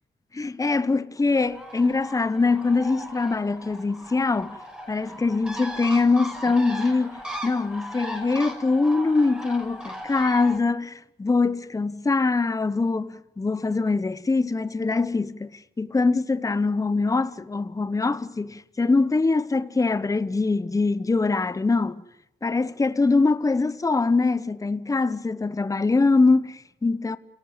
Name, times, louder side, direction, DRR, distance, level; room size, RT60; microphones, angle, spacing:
voice 1, 0.3-4.6 4.9-22.0 22.4-27.2, left 3 dB, 15° left, 0.9 m, -23 dB
Bird, 1.4-10.6, equal, 5° right, 6.0 m, -38 dB
29.5 x 17.5 x 7.3 m
cardioid pair, 90°, 20 cm